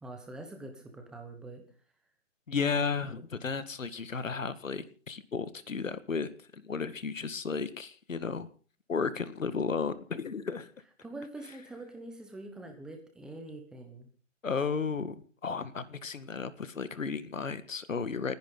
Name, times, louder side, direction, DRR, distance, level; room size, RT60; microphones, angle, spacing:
voice 1, 0.0-1.6 2.6-2.9 11.0-14.1, right 2 dB, ahead, 4 dB, 1.1 m, -44 dB
voice 2, 2.5-8.5 8.9-10.7 14.4-15.2 15.4-18.3, left 5 dB, 80° left, 14 dB, 1.9 m, -33 dB
29.5 x 10.5 x 3.9 m, 0.40 s
hypercardioid pair, 160°, 38 cm